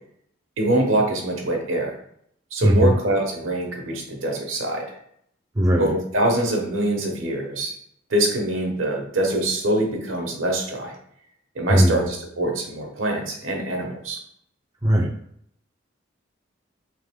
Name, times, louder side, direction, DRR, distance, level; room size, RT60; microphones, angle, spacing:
voice 1, 0.6-1.9 2.5-4.9 5.8-7.8 8.1-10.9 11.5-14.2, right 1 dB, 80° right, 1 dB, 1.1 m, -24 dB
voice 2, 2.6-3.0 5.6-5.9 11.7-12.1 14.8-15.1, equal, 20° right, 1 dB, 0.3 m, -18 dB
3.6 x 2.9 x 3.6 m, 0.68 s
head